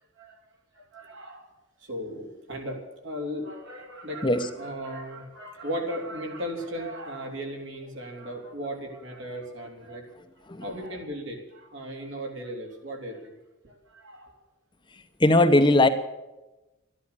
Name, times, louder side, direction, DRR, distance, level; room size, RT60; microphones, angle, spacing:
voice 1, 0.7-1.5 1.8-2.8 3.0-10.0 10.6-13.3 13.6-14.3, equal, 65° right, 1 dB, 3.5 m, -36 dB
voice 2, 15.2-15.9, left 2 dB, 25° left, 8 dB, 0.9 m, -19 dB
13.5 x 11.0 x 8.5 m, 1.0 s
head